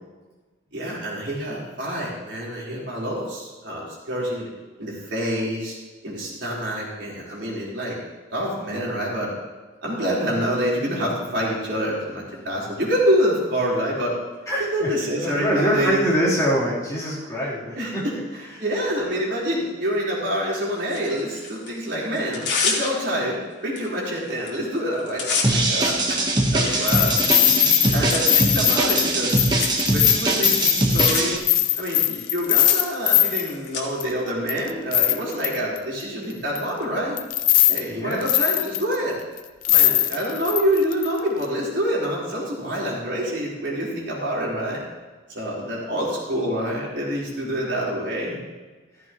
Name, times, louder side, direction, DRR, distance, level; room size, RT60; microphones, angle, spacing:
voice 1, 0.7-4.5 4.8-5.8 6.0-8.0 8.3-9.3 9.8-14.2 14.6-16.1 17.8-18.1 18.6-26.2 26.5-27.1 27.9-29.4 29.9-31.4 31.8-37.2 37.7-39.2 39.6-44.8 45.3-48.4, equal, 65° right, -5 dB, 4.2 m, -26 dB
voice 2, 14.5-14.9 15.2-18.1 18.5-18.6 26.6-27.2 27.6-27.9 37.9-38.3, equal, 15° left, -9 dB, 3.7 m, -25 dB
Tearing, 20.9-21.7 22.2-23.2 23.8-23.9 24.2-24.5 24.8-33.8, left 5 dB, 65° left, 2.3 m, -31 dB
sound 1, 25.4-31.4, right 2 dB, 20° right, 1.2 m, -22 dB
sound 2, 25.8-25.9 26.9-33.5 34.0-34.1 34.5-35.8 36.6-36.7 37.2-37.8 38.1-39.0 39.4-39.5 39.6-41.1 41.4-41.5, left 14 dB, 45° left, 0.5 m, -20 dB
14.5 x 14.0 x 3.1 m, 1.3 s
head